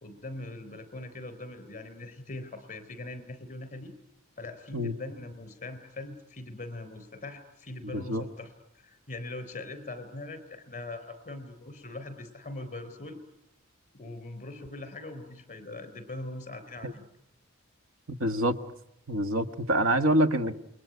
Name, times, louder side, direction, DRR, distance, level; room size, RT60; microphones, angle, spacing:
voice 1, 0.0-4.0 4.4-13.2 13.9-17.0, left 2 dB, 40° left, 4.0 m, -41 dB
voice 2, 7.9-8.2 16.8-16.9 18.1-18.6 19.1-20.5, right 1 dB, 85° right, 1.5 m, -26 dB
28.5 x 22.0 x 9.5 m
head